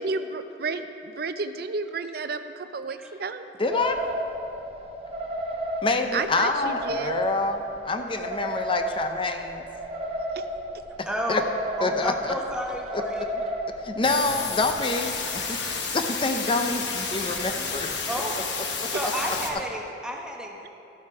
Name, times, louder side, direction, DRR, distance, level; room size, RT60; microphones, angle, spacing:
voice 1, 0.0-3.4 6.1-7.2 15.5-15.6, right 4 dB, 60° right, 10 dB, 0.5 m, -31 dB
voice 2, 3.6-4.0 5.8-9.7 11.0-11.4 11.8-12.3 12.9-13.0 13.9-17.9 18.8-18.9, left 3 dB, 30° left, 6 dB, 0.6 m, -27 dB
sound 1, 3.7-14.7, equal, 35° right, 1.0 m, -33 dB
voice 3, 11.0-11.4 11.8-13.4 18.1-18.4 18.9-20.7, equal, 5° right, -1 dB, 0.9 m, -31 dB
sound 2, 14.0-19.5, left 5 dB, 90° left, 1.1 m, -31 dB
13.5 x 7.2 x 4.8 m, 2.7 s
head